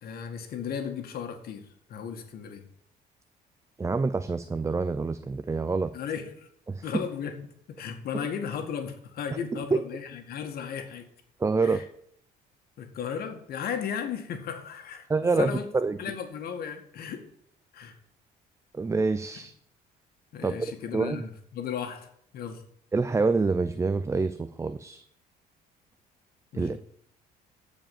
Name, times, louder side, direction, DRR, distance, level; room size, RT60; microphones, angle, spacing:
voice 1, 0.0-2.6 5.9-6.5 6.8-7.4 7.7-11.1 11.6-11.8 12.8-15.7 16.0-17.3 17.7-18.0 20.3-22.1 22.3-22.6 26.5-26.8, left 7 dB, 65° left, 6 dB, 2.0 m, -35 dB
voice 2, 3.8-5.9 6.7-7.0 9.3-9.4 9.7-9.8 11.4-11.9 15.1-16.0 18.7-19.5 20.4-20.5 20.9-21.2 22.9-25.0 26.5-26.8, right 4 dB, 15° right, 12 dB, 0.5 m, -26 dB
15.5 x 5.1 x 7.2 m, 0.69 s
cardioid pair, 110°, 17 cm